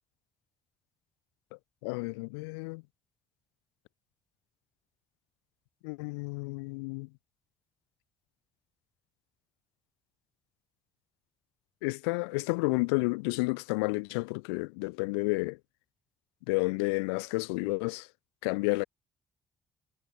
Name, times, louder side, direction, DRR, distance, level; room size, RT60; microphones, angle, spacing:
voice 1, 1.8-2.8 5.8-7.1 11.8-15.6 16.5-18.1 18.4-18.8, left 29 dB, 85° left, 0.4 m, -31 dB
hypercardioid pair, 45°, 13 cm